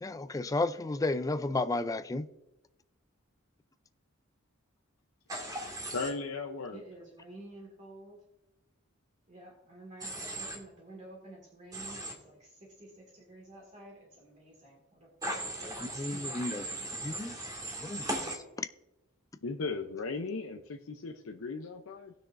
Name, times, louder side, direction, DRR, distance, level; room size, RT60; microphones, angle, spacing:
voice 1, 0.0-2.3 15.4-16.7 17.0-17.4 17.8-18.7, left 2 dB, 15° left, 0.3 m, -33 dB
Human voice / Train, 5.3-6.1 10.0-10.6 11.7-12.1 15.2-18.4, right 1 dB, 20° right, 1.9 m, -38 dB
voice 2, 5.9-6.8 19.4-22.1, left 4 dB, 70° left, 0.6 m, -37 dB
voice 3, 6.7-8.2 9.3-12.5 12.8-16.9, right 1 dB, 35° right, 2.0 m, -51 dB
18.5 x 6.2 x 2.6 m
head